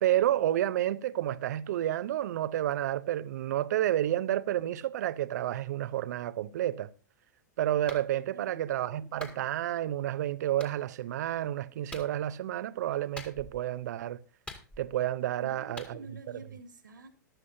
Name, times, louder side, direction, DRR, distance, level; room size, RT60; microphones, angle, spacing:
voice 1, 0.0-6.9 7.6-14.2 14.8-16.0, right 12 dB, 60° right, 0.7 m, -30 dB
Clapping, 7.9-8.1 9.2-9.4 10.6-10.7 11.9-12.1 13.2-13.6 14.5-15.0 15.8-15.9, left 2 dB, 10° left, 2.2 m, -44 dB
voice 2, 8.3-9.5 15.4-17.1, right 2 dB, 80° right, 2.0 m, -49 dB
14.5 x 12.0 x 2.7 m
hypercardioid pair, 105°, 10 cm